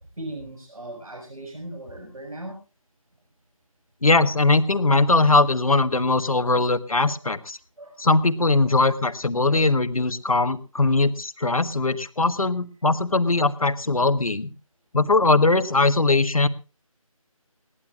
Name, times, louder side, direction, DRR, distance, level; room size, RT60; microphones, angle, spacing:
voice 1, 0.2-2.6 7.1-7.2 7.8-8.0 8.6-8.7 9.5-9.6, right 1 dB, 75° right, 3 dB, 6.1 m, -38 dB
voice 2, 4.0-7.6 8.0-14.5 14.9-16.5, left 3 dB, 75° left, 11 dB, 1.5 m, -20 dB
21.5 x 17.0 x 2.4 m, 0.32 s
figure-of-eight pair, 165°, 18 cm